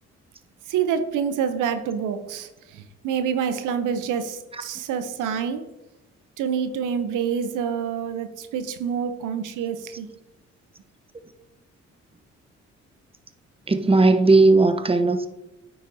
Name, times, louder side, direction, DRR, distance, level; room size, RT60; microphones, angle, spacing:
voice 1, 0.7-5.6 6.4-10.1, right 7 dB, 90° right, 0.7 m, -27 dB
voice 2, 13.7-15.3, right 3 dB, 20° right, 0.9 m, -17 dB
9.3 x 7.0 x 2.7 m
supercardioid pair, 55°, 30 cm